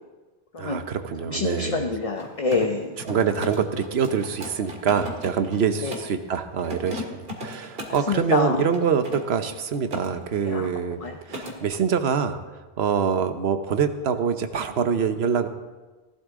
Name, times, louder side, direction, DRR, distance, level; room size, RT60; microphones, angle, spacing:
voice 1, 0.6-1.9 3.0-11.0 11.3-12.4 12.8-15.5, right 6 dB, 80° right, 9 dB, 1.1 m, -25 dB
voice 2, 1.3-2.9 5.8-5.9 8.1-8.6 10.4-10.7 11.0-11.1 11.4-11.5, left 3 dB, 35° left, 3 dB, 0.9 m, -26 dB
Mechanisms, 2.1-6.2 6.6-8.1 8.7-10.1 10.4-10.7 11.0-11.6, equal, 65° right, 2.1 m, -37 dB
17.5 x 12.0 x 3.7 m, 1.2 s
omnidirectional pair, 1.0 m